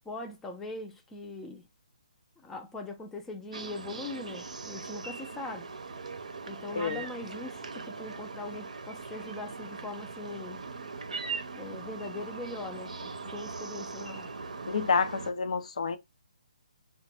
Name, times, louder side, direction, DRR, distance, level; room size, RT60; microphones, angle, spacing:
voice 1, 0.1-1.7 2.4-5.7 6.5-10.6 11.5-14.3, left 2 dB, 10° left, 0.4 m, -41 dB
sound 1, 3.5-15.3, right 4 dB, 75° right, 0.5 m, -40 dB
voice 2, 14.7-16.0, left 5 dB, 65° left, 0.5 m, -28 dB
3.1 x 2.1 x 2.8 m
figure-of-eight pair, 145°, 4 cm